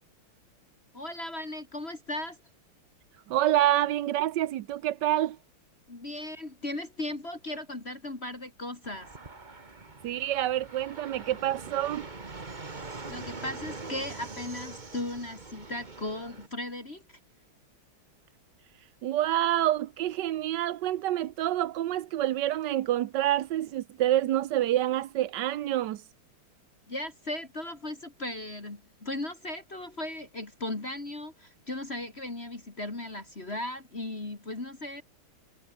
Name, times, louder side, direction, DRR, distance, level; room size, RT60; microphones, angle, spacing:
voice 1, 0.9-2.4 5.9-9.1 13.1-17.2 26.9-35.0, left 1 dB, 30° left, 3.0 m, -37 dB
voice 2, 3.3-5.4 10.0-12.1 19.0-26.0, right 13 dB, 65° right, 1.2 m, -27 dB
Fixed-wing aircraft airplane, 8.8-16.5, right 3 dB, 20° right, 1.7 m, -43 dB
omnidirectional pair, 2.4 m